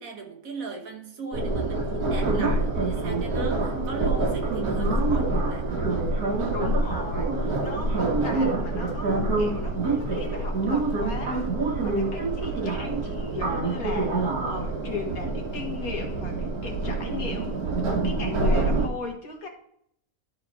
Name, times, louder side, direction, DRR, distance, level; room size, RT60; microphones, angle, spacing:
voice 1, 0.0-5.7, right 4 dB, 70° right, 1.6 m, -38 dB
sound 1, 1.3-18.9, right 2 dB, 90° right, 1.7 m, -26 dB
voice 2, 6.5-17.6 18.0-19.5, left 4 dB, 70° left, 2.0 m, -37 dB
12.5 x 4.3 x 4.0 m
omnidirectional pair, 1.6 m